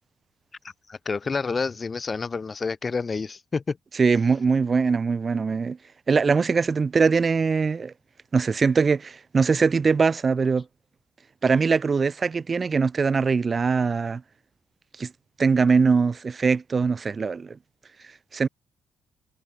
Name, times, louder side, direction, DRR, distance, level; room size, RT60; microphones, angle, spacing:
voice 1, 0.9-3.8, left 4 dB, 35° left, 0.5 m, -28 dB
voice 2, 4.0-5.8 6.1-7.9 8.3-10.7 11.4-14.2 15.0-15.1 15.4-17.6 18.3-18.5, right 5 dB, 35° right, 0.3 m, -22 dB
cardioid pair, 80°, 0 cm